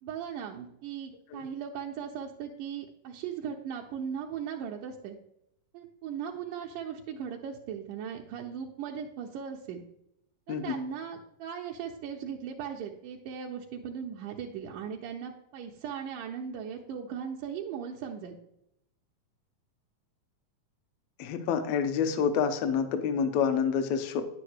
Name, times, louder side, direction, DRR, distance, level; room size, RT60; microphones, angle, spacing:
voice 1, 0.0-5.2 5.7-9.8 10.5-18.4, right 7 dB, 80° right, -1 dB, 2.3 m, -38 dB
voice 2, 21.2-24.3, left 7 dB, 70° left, 8 dB, 1.7 m, -28 dB
10.0 x 8.7 x 3.1 m, 0.80 s
omnidirectional pair, 3.9 m